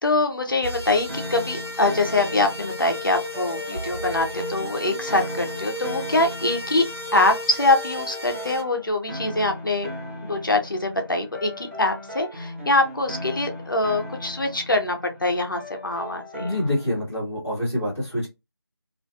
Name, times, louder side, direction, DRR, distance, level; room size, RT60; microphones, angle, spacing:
voice 1, 0.0-6.8 7.1-9.9 10.2-16.5, left 2 dB, 55° left, 0.6 m, -24 dB
sound 1, 0.6-8.6, left 1 dB, 85° right, 1.2 m, -34 dB
sound 2, 1.1-17.0, left 1 dB, 35° right, 0.8 m, -38 dB
voice 2, 16.4-18.3, left 1 dB, 5° right, 0.6 m, -26 dB
2.4 x 2.2 x 2.5 m
figure-of-eight pair, 165°, 13 cm